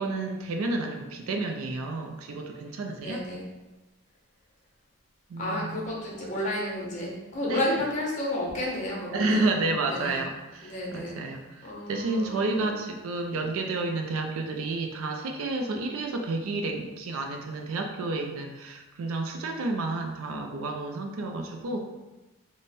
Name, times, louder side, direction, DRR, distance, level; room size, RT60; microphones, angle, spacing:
voice 1, 0.0-3.3 5.3-5.8 7.4-7.6 9.1-21.8, right 2 dB, 75° right, 3 dB, 0.4 m, -30 dB
voice 2, 2.9-3.4 5.4-9.5 9.9-10.2 10.6-11.2 11.6-12.7, left 1 dB, 35° left, -3 dB, 0.8 m, -31 dB
3.3 x 2.1 x 4.1 m, 1.1 s
head